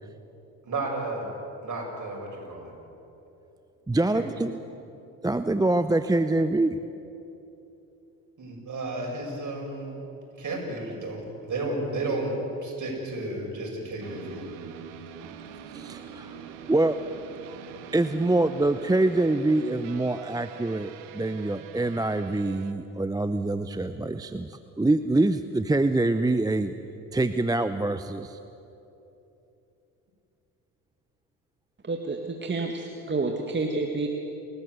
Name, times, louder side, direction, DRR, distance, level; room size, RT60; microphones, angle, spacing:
voice 1, 0.6-1.3 1.6-2.7 4.1-4.2 8.4-10.0 10.4-14.4, right 2 dB, 45° right, 0 dB, 7.6 m, -32 dB
voice 2, 3.9-4.6 5.2-6.8 15.7-16.4 16.7-17.0 17.9-26.7 27.1-28.4, right 2 dB, 10° right, 10 dB, 0.7 m, -25 dB
sound 1, 14.0-22.7, right 8 dB, 75° right, 1.6 m, -43 dB
voice 3, 31.8-34.1, right 3 dB, 25° right, 3 dB, 2.0 m, -29 dB
29.0 x 14.0 x 8.2 m, 2.9 s
hypercardioid pair, 60°, 43 cm